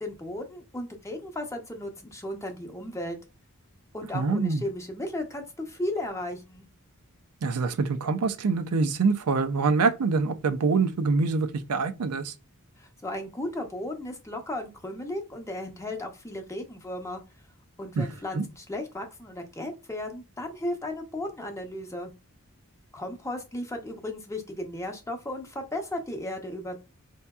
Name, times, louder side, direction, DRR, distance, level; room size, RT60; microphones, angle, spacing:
voice 1, 0.0-3.2 3.9-6.7 12.8-17.2 17.8-22.1 22.9-26.8, left 1 dB, 15° left, 0.7 m, -35 dB
voice 2, 4.1-4.6 7.4-12.3 18.0-18.1 18.3-18.4, right 4 dB, 85° right, 0.5 m, -25 dB
4.4 x 2.8 x 2.3 m
head